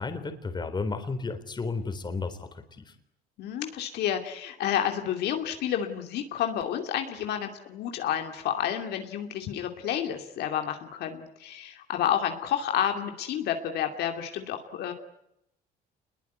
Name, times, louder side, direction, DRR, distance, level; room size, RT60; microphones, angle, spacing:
voice 1, 0.0-2.9, left 4 dB, 25° left, 9 dB, 3.7 m, -33 dB
voice 2, 3.4-14.9, left 9 dB, 75° left, 5 dB, 2.7 m, -30 dB
26.5 x 21.5 x 9.4 m, 0.82 s
cardioid pair, 110°, 17 cm